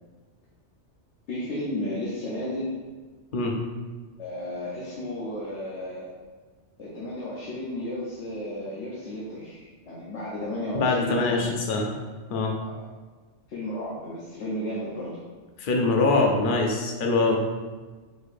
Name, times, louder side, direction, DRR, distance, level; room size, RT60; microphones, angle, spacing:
voice 1, 1.3-2.7 4.2-6.1 6.8-11.5 12.6-12.8 13.5-15.2, left 1 dB, 75° left, -7 dB, 1.1 m, -33 dB
voice 2, 10.7-11.9 12.3-12.5 15.6-17.4, left 3 dB, 55° left, 1 dB, 0.8 m, -23 dB
4.5 x 4.4 x 2.5 m, 1.3 s
omnidirectional pair, 1.2 m